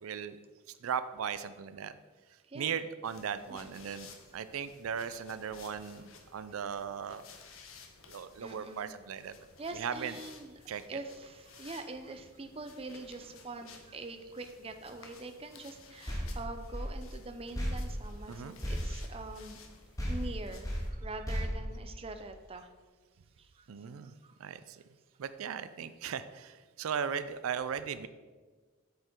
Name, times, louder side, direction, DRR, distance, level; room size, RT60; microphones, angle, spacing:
voice 1, 0.0-0.4 0.7-1.9 2.5-7.2 8.1-9.4 9.7-10.2 10.7-11.0 18.3-18.5 23.7-24.1 24.4-24.8 25.2-28.1, right 7 dB, 85° right, 13 dB, 0.4 m, -37 dB
voice 2, 2.4-2.8 3.5-3.6 5.7-5.8 8.4-8.9 9.6-19.6 20.1-22.7 23.4-24.4, right 2 dB, 25° right, 7 dB, 0.5 m, -44 dB
sound 1, 3.0-20.9, left 5 dB, 75° left, 1.0 m, -56 dB
sound 2, 16.1-19.7 20.0-22.4, equal, 15° left, 1.6 m, -36 dB
8.2 x 6.7 x 4.5 m, 1.4 s
head